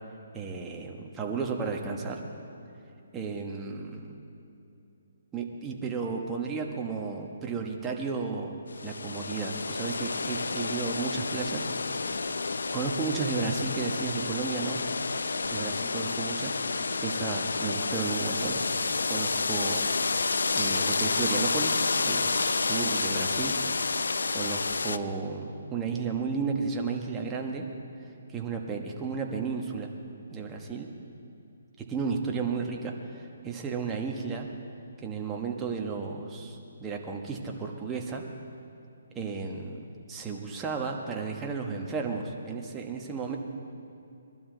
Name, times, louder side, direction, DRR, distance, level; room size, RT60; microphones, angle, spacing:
voice 1, 0.3-2.2 3.1-4.1 5.3-11.7 12.0-12.2 12.7-14.8 15.5-16.6 17.0-18.6 19.1-19.9 20.5-23.6 24.3-27.6 28.3-29.9 30.3-30.9 31.8-34.5 35.0-38.2 39.1-43.4, right 5 dB, 10° right, 1 dB, 1.2 m, -33 dB
sound 1, 8.7-25.0, left 4 dB, 90° left, 0.6 m, -29 dB
23.0 x 12.5 x 3.9 m, 2.8 s
hypercardioid pair, 160°, 0 cm